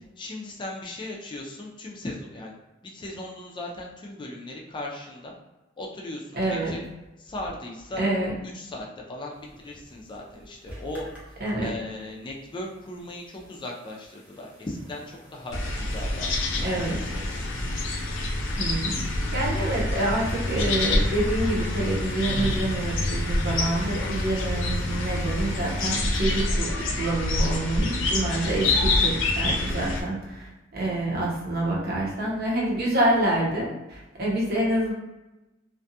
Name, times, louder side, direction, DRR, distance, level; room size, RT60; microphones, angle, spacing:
voice 1, 0.2-2.5 2.8-5.3 5.8-6.8 7.2-8.1 8.5-17.3, left 1 dB, 25° left, -1 dB, 0.4 m, -38 dB
voice 2, 6.3-6.7 8.0-8.3 11.4-11.7 16.6-17.0 18.6-19.0 19.3-26.7 27.0-34.9, right 1 dB, 55° right, -4 dB, 0.8 m, -27 dB
sound 1, 9.3-26.4, equal, 10° right, 0.7 m, -44 dB
sound 2, 15.5-30.0, left 2 dB, 85° left, 0.5 m, -27 dB
2.5 x 2.2 x 2.6 m, 1.0 s
head